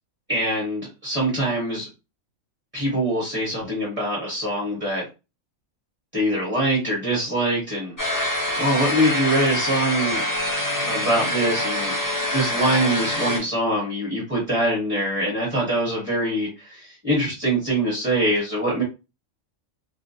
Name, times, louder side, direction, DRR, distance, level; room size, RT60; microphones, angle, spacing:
voice 1, 0.3-1.9 2.7-5.0 6.1-8.1 8.6-10.2 10.8-11.9 12.3-18.8, right 1 dB, 10° right, -5 dB, 0.9 m, -23 dB
sound 1, 8.0-13.4, left 1 dB, 35° left, 0.3 m, -25 dB
2.3 x 2.1 x 2.7 m, 0.28 s
omnidirectional pair, 1.4 m